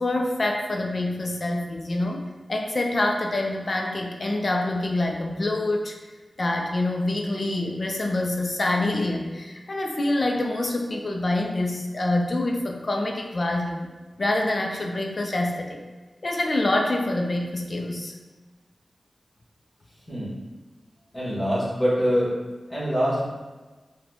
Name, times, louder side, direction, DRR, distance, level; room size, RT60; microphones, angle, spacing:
voice 1, 0.0-2.2 2.5-5.9 6.4-13.9 14.2-15.8 16.2-18.1, left 2 dB, 55° left, 2 dB, 0.3 m, -26 dB
voice 2, 21.1-22.4 22.7-23.2, equal, 30° left, -9 dB, 1.3 m, -24 dB
4.2 x 2.1 x 2.7 m, 1.2 s
cardioid pair, 45°, 0 cm